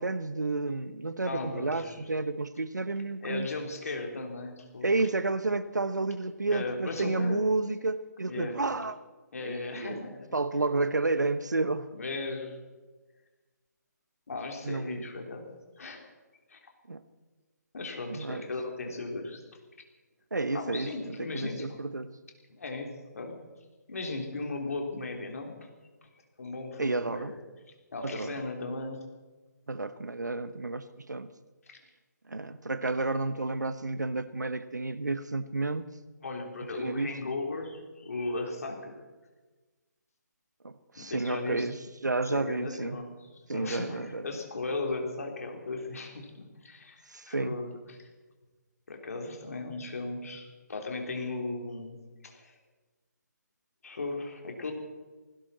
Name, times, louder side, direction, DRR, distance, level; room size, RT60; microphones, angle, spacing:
voice 1, 0.0-3.5 4.8-9.0 9.4-10.0 10.3-11.9 14.6-15.0 16.9-17.0 18.1-18.4 20.3-22.1 26.8-27.3 28.0-28.4 29.7-31.3 32.3-35.9 36.7-37.2 40.6-41.8 42.0-43.0 43.5-44.3 47.1-47.6, right 3 dB, 75° right, 13 dB, 1.0 m, -31 dB
voice 2, 1.2-2.0 3.2-5.1 6.5-7.5 8.3-8.6 9.3-10.4 11.9-12.6 14.3-15.5 15.8-16.1 16.5-16.7 17.7-19.4 20.5-21.8 22.5-23.4 23.9-25.5 26.4-27.4 27.9-29.0 36.2-39.0 41.0-41.7 42.3-43.2 43.5-47.0 47.3-48.0 48.9-52.0 52.2-52.6 53.8-54.7, left 3 dB, 55° left, 2 dB, 3.4 m, -36 dB
19.5 x 17.0 x 4.2 m, 1.3 s
figure-of-eight pair, 145°, 10 cm